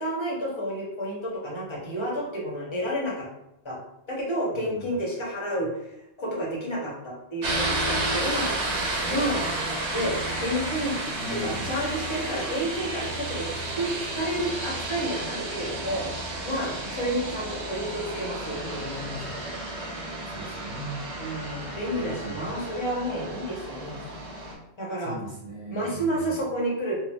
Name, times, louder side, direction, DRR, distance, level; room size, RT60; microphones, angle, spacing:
voice 1, 0.0-3.3 3.6-3.8 4.1-5.8 6.2-8.6 9.0-9.5 9.9-11.0 11.3-19.5 21.2-24.0 24.8-25.1 25.7-27.0, equal, 30° left, -3 dB, 0.6 m, -30 dB
voice 2, 4.5-5.0 11.1-11.8 16.7-16.8 20.2-20.9 21.9-22.5 25.0-26.4, right 1 dB, 35° right, -5 dB, 0.6 m, -39 dB
sound 1, 7.4-24.5, right 2 dB, 75° right, 1.0 m, -32 dB
2.7 x 2.0 x 3.2 m, 0.84 s
omnidirectional pair, 1.2 m